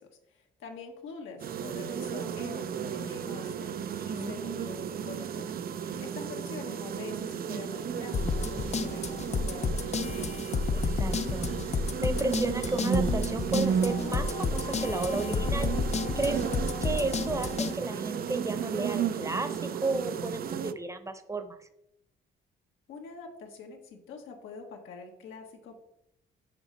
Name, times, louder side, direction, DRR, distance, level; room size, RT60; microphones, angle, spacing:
voice 1, 0.0-5.5 5.7-10.4 22.9-25.8, left 4 dB, 85° left, 2 dB, 1.5 m, -45 dB
sound 1, 1.4-20.7, right 7 dB, 50° right, 0.4 m, -34 dB
voice 2, 4.1-4.4 10.7-11.5 11.7-15.7 16.1-16.4 16.8-21.7, right 2 dB, 15° right, 9 dB, 0.8 m, -33 dB
sound 2, 8.1-17.7, left 4 dB, 35° left, 0.5 m, -31 dB
7.4 x 5.0 x 4.1 m, 0.81 s
cardioid pair, 90°, 20 cm